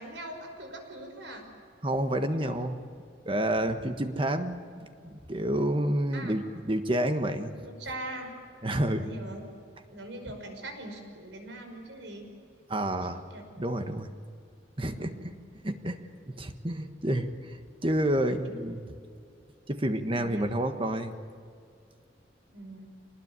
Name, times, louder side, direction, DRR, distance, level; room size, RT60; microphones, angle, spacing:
voice 1, 0.0-1.5 2.3-2.6 6.1-6.4 7.6-8.4 8.9-9.4 9.9-12.3 13.0-13.4 14.9-15.3 20.1-20.5 22.5-22.9, right 1 dB, 85° right, 4 dB, 5.6 m, -42 dB
voice 2, 1.8-2.8 3.2-7.6 8.6-9.1 12.7-13.2 13.6-14.1 14.8-15.3 15.6-16.0 16.4-18.9 19.7-21.1, right 1 dB, 30° right, 7 dB, 1.4 m, -29 dB
26.0 x 20.0 x 9.8 m, 2.4 s
head